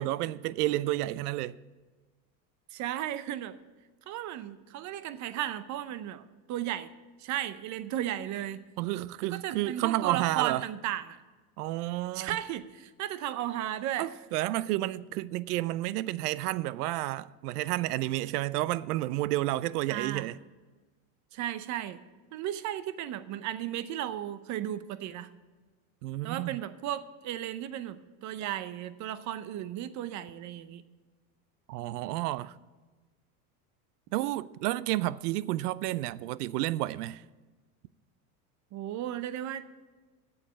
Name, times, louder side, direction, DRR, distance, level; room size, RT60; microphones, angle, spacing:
voice 1, 0.0-1.6 8.8-10.7 11.6-12.4 14.0-20.4 26.0-26.6 31.7-32.6 34.1-37.2, right 16 dB, 85° right, 0.6 m, -31 dB
voice 2, 2.7-3.6 4.1-6.9 7.2-8.6 9.3-11.2 12.1-14.1 19.9-20.3 21.3-22.0 22.3-25.3 26.2-30.8 38.7-39.7, right 12 dB, 40° right, 0.7 m, -35 dB
8.8 x 7.2 x 8.4 m
supercardioid pair, 130°, 45 cm